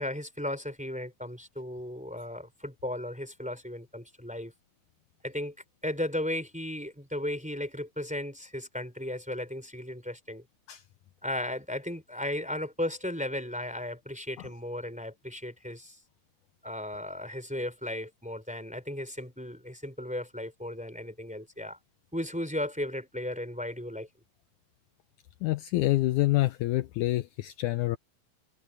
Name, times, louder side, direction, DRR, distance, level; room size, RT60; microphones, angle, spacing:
voice 1, 0.0-4.5 5.2-5.5 5.8-10.4 11.2-16.0 16.6-21.8 22.1-24.1, left 1 dB, ahead, 3.7 m, -35 dB
voice 2, 25.4-28.0, left 17 dB, 85° left, 1.7 m, -27 dB
omnidirectional pair, 4.3 m